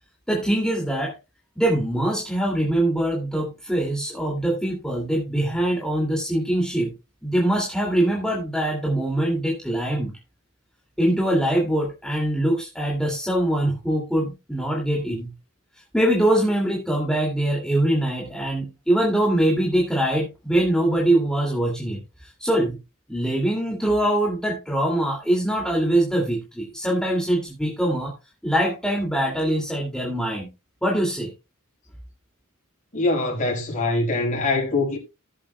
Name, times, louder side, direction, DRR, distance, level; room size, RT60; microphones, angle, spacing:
voice 1, 0.3-1.2 1.6-6.9 7.2-10.1 11.0-15.3 15.7-22.8 23.1-28.1 28.4-30.5 30.8-31.3, right 1 dB, 5° left, 2.5 m, -23 dB
voice 2, 32.9-35.0, left 2 dB, 35° left, 4.8 m, -23 dB
18.5 x 7.8 x 2.3 m
head